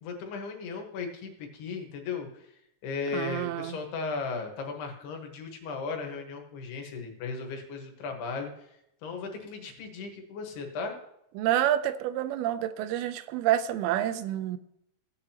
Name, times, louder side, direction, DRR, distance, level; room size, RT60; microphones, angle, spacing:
voice 1, 0.0-2.5 2.8-8.5 9.0-10.9, left 4 dB, 85° left, 3 dB, 3.5 m, -36 dB
voice 2, 3.1-3.8 11.4-14.6, right 12 dB, 85° right, 13 dB, 2.5 m, -28 dB
16.5 x 8.9 x 2.9 m, 0.78 s
omnidirectional pair, 4.5 m